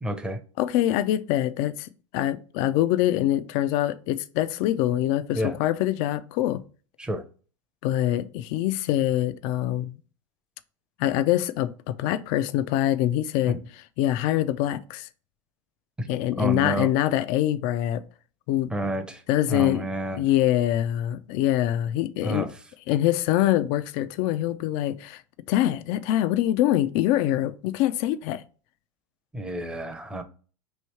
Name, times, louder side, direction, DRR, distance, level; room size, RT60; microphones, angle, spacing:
voice 1, 0.0-0.4 5.3-5.6 7.0-7.2 13.5-13.6 16.0-16.1 16.4-16.9 18.7-19.2 19.5-20.3 22.2-22.5 29.3-30.2, right 1 dB, 5° right, 0.6 m, -29 dB
voice 2, 0.6-6.6 7.8-9.9 11.0-13.6 14.0-15.1 16.1-18.0 18.5-18.9 19.3-19.8 20.1-22.5 22.9-25.2 25.5-28.4, left 13 dB, 55° left, 0.4 m, -24 dB
3.1 x 2.7 x 4.3 m
supercardioid pair, 115°, 16 cm